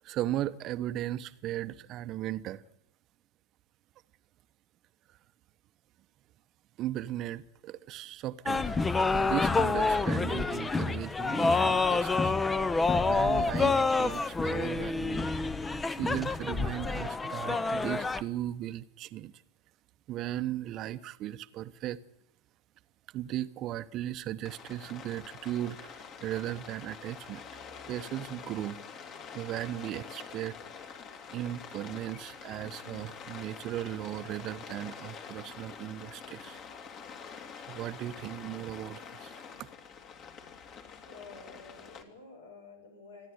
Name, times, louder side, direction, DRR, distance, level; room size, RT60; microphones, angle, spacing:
voice 1, 0.0-2.6 6.8-8.8 9.1-12.7 12.9-15.4 15.9-19.3 20.1-22.0 23.1-27.4 27.9-28.8 29.3-30.5 30.9-31.0 31.3-36.6 37.7-39.4, right 13 dB, 40° right, 1.0 m, -37 dB
sound 1, 8.5-18.2, left 3 dB, 15° left, 0.9 m, -28 dB
Rain, 24.4-42.0, left 6 dB, 40° left, 2.8 m, -46 dB
voice 2, 40.8-43.3, left 3 dB, 80° left, 7.6 m, -51 dB
28.0 x 11.0 x 9.4 m
figure-of-eight pair, 90°, 0 cm